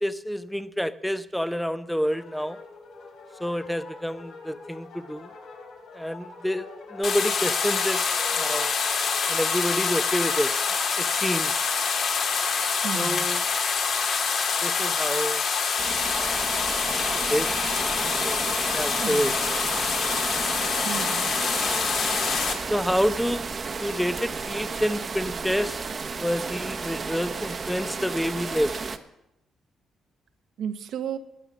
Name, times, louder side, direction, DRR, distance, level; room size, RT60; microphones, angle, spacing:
voice 1, 0.0-2.6 3.4-5.3 5.9-6.6 6.9-8.0 8.4-8.7 9.3-10.5 11.0-11.5 12.9-13.5 14.6-15.4 17.1-17.6 18.2-19.6 22.7-23.5 23.8-25.8 26.1-28.7, equal, ahead, 13 dB, 0.7 m, -28 dB
sound 1, 2.0-9.4, left 4 dB, 80° left, 3.6 m, -44 dB
sound 2, 7.0-22.5, left 5 dB, 65° left, 2.4 m, -26 dB
voice 2, 12.8-13.3 19.0-19.3 20.8-21.3 30.6-31.2, right 9 dB, 70° right, 10 dB, 1.1 m, -33 dB
sound 3, 15.8-29.0, right 4 dB, 40° right, 1.0 m, -33 dB
19.5 x 9.0 x 6.1 m, 0.89 s
cardioid pair, 90°, 0 cm